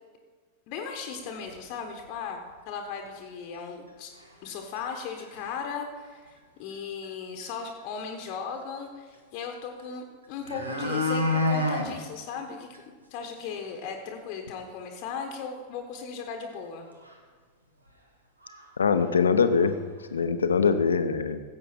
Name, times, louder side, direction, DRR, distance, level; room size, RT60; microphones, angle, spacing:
voice 1, 0.7-2.4 2.7-4.1 4.4-16.9, left 6 dB, 45° left, 4 dB, 1.1 m, -37 dB
sound 1, 1.5-1.6 2.0-2.1 2.5-2.6 3.5-3.6 4.2-4.5 4.8-4.9 5.2-5.6 7.0-7.1 7.4-7.5 9.8-9.9 10.2-11.9 12.3-12.4 12.7-12.8 13.2-13.3 13.6-13.7 16.6-16.7 17.0-17.1 17.9-18.0 18.4-18.6 18.9-19.7 20.0-20.1, left 2 dB, 80° right, 1.4 m, -29 dB
voice 2, 18.8-19.8 20.1-21.4, left 5 dB, 70° left, 10 dB, 0.7 m, -23 dB
15.0 x 7.7 x 4.4 m, 1.5 s
figure-of-eight pair, 90°, 0 cm